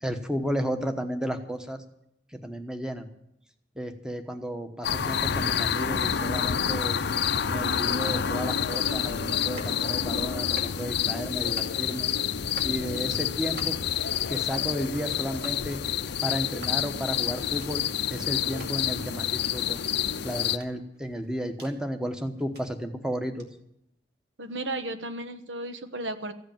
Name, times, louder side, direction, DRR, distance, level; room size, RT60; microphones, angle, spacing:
voice 1, 0.0-1.8 2.3-3.1 3.8-7.0 7.5-12.1 12.6-13.8 14.3-15.8 16.2-17.8 18.1-19.8 20.2-23.5, equal, 5° right, 7 dB, 1.1 m, -33 dB
sound 1, 4.8-20.6, left 8 dB, 65° left, 0.6 m, -28 dB
sound 2, 9.4-9.8 10.4-11.0 11.4-11.8 12.4-12.8 13.4-13.9 14.4-14.8 15.4-15.6 16.4-16.8 17.4-17.7 18.4-18.7 19.4-19.5 20.4-21.8 22.4-22.6 23.4-23.5, right 2 dB, 60° right, 2.6 m, -46 dB
voice 2, 24.4-26.3, right 2 dB, 85° right, 9 dB, 1.2 m, -34 dB
15.0 x 8.1 x 9.0 m, 0.78 s
head